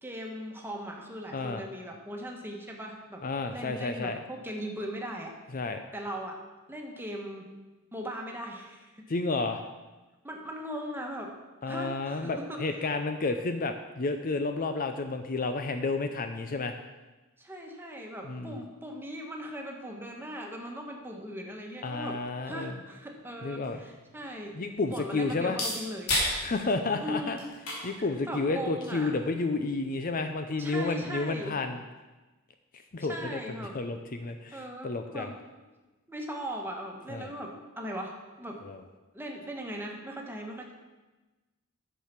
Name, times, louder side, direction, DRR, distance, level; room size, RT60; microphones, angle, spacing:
voice 1, 0.0-3.2 3.5-5.3 5.9-6.4 6.7-7.5 7.9-8.9 10.2-11.3 11.6-12.9 17.4-22.2 22.4-24.6 24.9-26.1 27.0-27.5 28.0-29.2 30.6-31.6 33.1-33.8 34.5-35.3 36.1-38.6 39.1-40.7, equal, 10° right, 1 dB, 1.3 m, -39 dB
voice 2, 1.3-1.6 3.2-4.2 5.5-5.8 9.1-9.6 11.6-16.7 18.2-18.6 21.8-22.8 23.4-23.8 24.5-25.6 26.4-27.4 27.8-31.8 32.9-33.4 33.7-35.3 37.1-37.3 38.6-38.8, left 3 dB, 40° left, 7 dB, 0.5 m, -31 dB
sound 1, 23.1-31.1, left 1 dB, 75° left, 3.0 m, -37 dB
10.0 x 6.7 x 5.9 m, 1.2 s
head